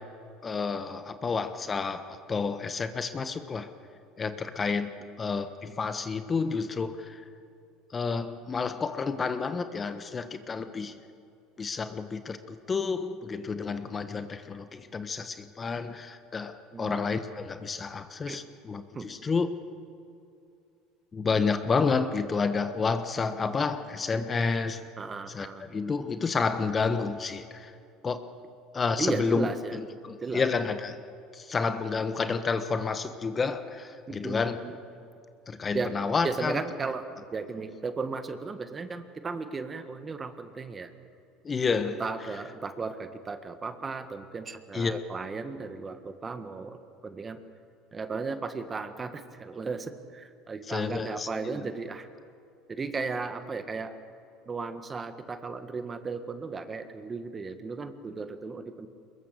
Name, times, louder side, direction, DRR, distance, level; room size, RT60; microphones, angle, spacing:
voice 1, 0.4-3.7 4.2-4.9 5.2-7.2 7.9-10.9 11.6-19.5 21.1-24.8 25.3-27.7 28.0-28.3 28.7-31.0 31.3-34.6 35.5-36.6 41.4-42.0 44.7-45.0 50.7-51.7, left 4 dB, 25° left, 10 dB, 1.2 m, -30 dB
voice 2, 5.0-5.4 16.7-17.3 18.3-18.4 18.9-19.1 25.0-25.6 29.0-29.8 30.2-30.4 34.1-34.8 35.7-35.9 36.2-37.1 37.3-40.9 42.0-46.8 47.0-47.4 47.9-52.1 52.7-53.9 54.5-58.9, right 4 dB, 25° right, 9 dB, 1.6 m, -35 dB
23.0 x 21.5 x 6.7 m, 2.6 s
supercardioid pair, 100°, 0 cm